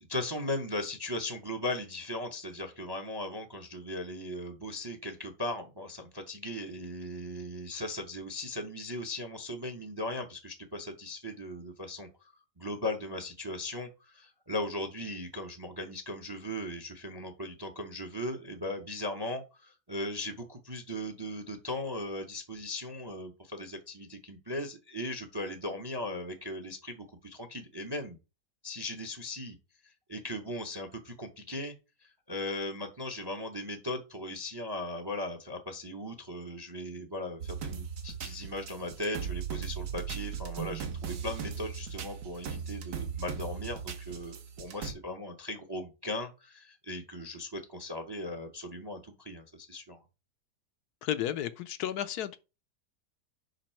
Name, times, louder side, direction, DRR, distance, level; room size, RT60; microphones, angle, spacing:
voice 1, 0.1-12.3 12.6-28.2 28.6-29.6 29.8-31.7 32.0-50.0, left 1 dB, 25° right, 0.5 m, -38 dB
sound 1, 37.4-44.9, right 7 dB, 70° right, 1.4 m, -38 dB
voice 2, 51.0-52.4, left 11 dB, 75° left, 1.1 m, -33 dB
5.4 x 5.1 x 4.4 m
omnidirectional pair, 1.8 m